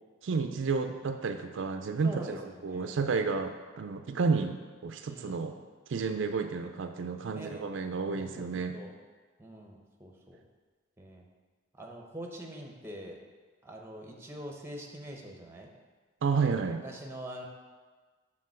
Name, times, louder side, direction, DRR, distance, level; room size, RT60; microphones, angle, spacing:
voice 1, 0.2-5.5 5.9-8.8 16.2-16.8, right 4 dB, 70° right, 7 dB, 0.4 m, -31 dB
voice 2, 2.0-2.9 5.1-5.5 7.3-7.6 8.1-8.9 9.4-10.4 11.0-11.3 11.7-13.2 13.6-15.7 16.8-17.5, right 1 dB, 15° right, 1 dB, 0.8 m, -44 dB
6.7 x 3.7 x 6.3 m, 1.4 s
head